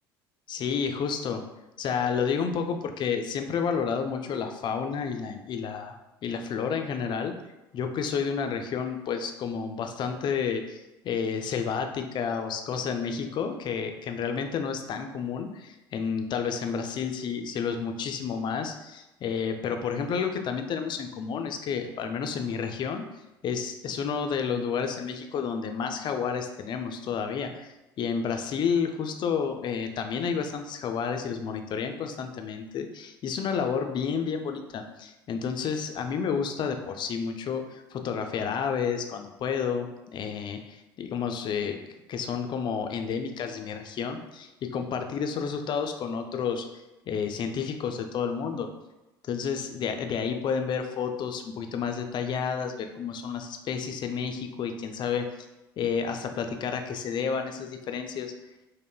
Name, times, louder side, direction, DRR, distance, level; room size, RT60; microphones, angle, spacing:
voice 1, 0.5-1.4 1.8-6.0 6.2-7.3 7.7-23.0 23.4-41.8 42.1-46.6 47.1-48.7 49.2-55.3 55.8-58.3, left 6 dB, 40° left, 6 dB, 0.4 m, -30 dB
5.0 x 2.1 x 2.2 m, 0.97 s
figure-of-eight pair, 65°, 12 cm